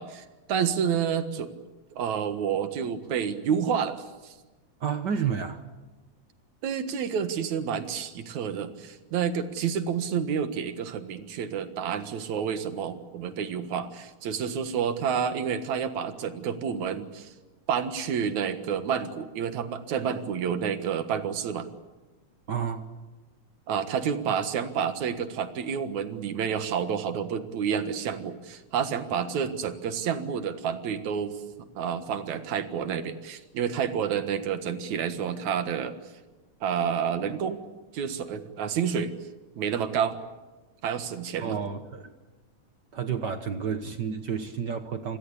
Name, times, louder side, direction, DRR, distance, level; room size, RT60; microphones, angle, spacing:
voice 1, 0.0-1.5 1.9-4.4 6.6-17.3 17.7-21.7 23.7-36.0 36.6-37.6 37.9-39.1 39.6-40.2 40.8-41.6, right 7 dB, 75° right, 10 dB, 2.9 m, -29 dB
voice 2, 4.8-5.6 22.5-22.9 41.4-42.1 42.9-45.2, right 7 dB, 55° right, 9 dB, 1.3 m, -30 dB
28.5 x 20.5 x 8.4 m, 1.2 s
omnidirectional pair, 3.3 m